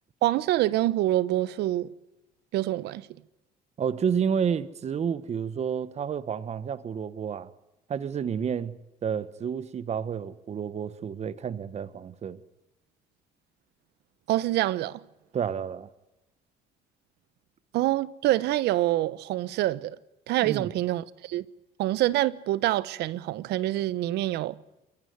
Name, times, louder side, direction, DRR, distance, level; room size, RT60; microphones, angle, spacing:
voice 1, 0.2-1.9 2.5-3.1 14.3-15.0 17.7-19.9 20.3-21.4 21.8-24.6, right 15 dB, 80° right, 1.0 m, -26 dB
voice 2, 3.8-7.5 7.9-8.8 9.0-12.4 15.3-15.9 20.4-20.7, right 7 dB, 40° right, 1.2 m, -30 dB
29.0 x 14.5 x 9.4 m
cardioid pair, 110°, 17 cm